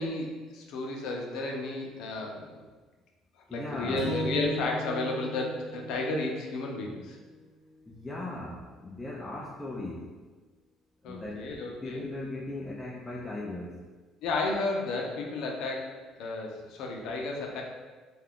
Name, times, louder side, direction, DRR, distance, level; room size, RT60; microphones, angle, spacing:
voice 1, 0.0-2.7 3.5-7.2 11.0-12.0 14.2-15.9 16.2-17.6, left 2 dB, 75° left, 0 dB, 0.5 m, -32 dB
voice 2, 3.5-4.1 7.9-10.1 11.0-11.5 11.8-13.8, left 2 dB, 15° left, -4 dB, 0.3 m, -38 dB
Strum, 4.0-8.3, right 2 dB, 75° right, 0.4 m, -40 dB
2.3 x 2.3 x 3.4 m, 1.3 s
cardioid pair, 110°, 0 cm